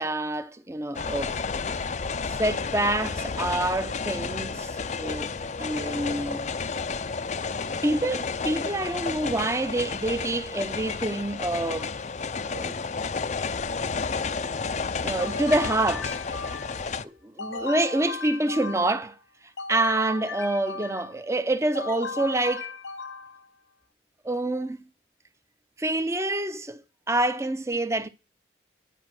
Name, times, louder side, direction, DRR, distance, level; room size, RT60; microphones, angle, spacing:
voice 1, 0.0-1.4 2.4-5.3 5.6-6.5 7.8-12.0 12.5-12.8 15.0-16.2 17.0-19.2 19.7-22.7 24.2-24.8 25.8-26.8 27.1-28.1, right 2 dB, 15° right, 0.7 m, -27 dB
sound 1, 0.9-17.0, left 5 dB, 40° left, 0.5 m, -31 dB
sound 2, 15.2-16.9 17.4-19.1 19.6-21.2 21.7-23.5, left 4 dB, 75° left, 0.7 m, -36 dB
10.0 x 5.1 x 7.6 m
head